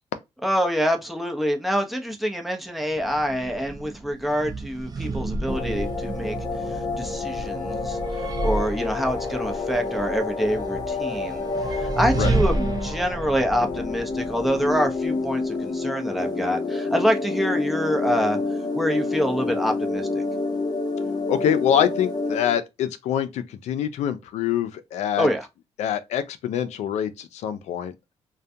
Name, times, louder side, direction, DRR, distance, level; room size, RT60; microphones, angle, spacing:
voice 1, 0.4-6.4 6.7-8.0 8.4-18.4 18.7-20.2 25.2-25.5, equal, ahead, 0.7 m, -26 dB
sound 1, 2.9-15.0, right 3 dB, 35° right, 0.5 m, -31 dB
sound 2, 5.5-22.5, left 3 dB, 35° left, 0.8 m, -29 dB
voice 2, 21.3-25.3 25.8-27.9, left 10 dB, 85° left, 0.4 m, -25 dB
2.2 x 2.2 x 2.7 m
cardioid pair, 70°, 11 cm